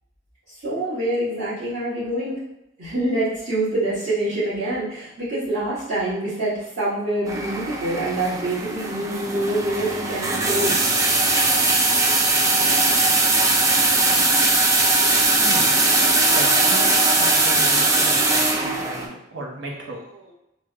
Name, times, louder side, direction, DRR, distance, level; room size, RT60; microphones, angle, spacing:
voice 1, 0.5-2.4 2.8-10.8, right 1 dB, 55° right, -15 dB, 1.4 m, -25 dB
sound 1, 7.3-19.1, right 2 dB, 20° right, 0.4 m, -20 dB
voice 2, 15.4-15.7 16.3-20.3, right 1 dB, 85° right, -1 dB, 0.7 m, -35 dB
3.2 x 2.0 x 3.3 m, 0.88 s
head